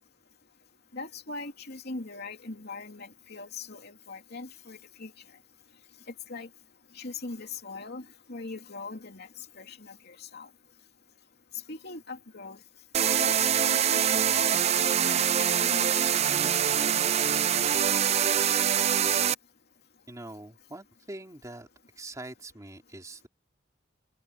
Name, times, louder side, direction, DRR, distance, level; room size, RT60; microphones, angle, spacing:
voice 1, 0.9-5.1 6.3-6.5 6.9-9.3 9.5-10.5 11.7-12.6 13.2-16.5, left 3 dB, 60° left, 3.1 m, -41 dB
sound 1, 12.9-19.3, right 9 dB, 35° right, 0.4 m, -24 dB
voice 2, 20.1-21.7 22.0-23.3, right 2 dB, 20° right, 3.4 m, -43 dB
head